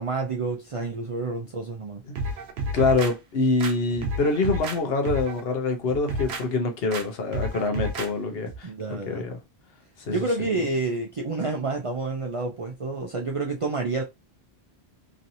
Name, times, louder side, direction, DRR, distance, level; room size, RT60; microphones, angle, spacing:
voice 1, 0.0-2.0 8.6-9.2 10.1-14.0, right 3 dB, 50° right, 0.4 m, -29 dB
sound 1, 2.2-3.1 3.6-4.8 5.0-5.4 5.9-6.4 6.9-7.0 7.3-8.1 8.5-8.6, right 1 dB, 80° right, 0.9 m, -30 dB
voice 2, 2.7-9.3 10.0-10.6, left 3 dB, 65° left, 0.9 m, -25 dB
3.1 x 2.7 x 2.6 m
omnidirectional pair, 1.1 m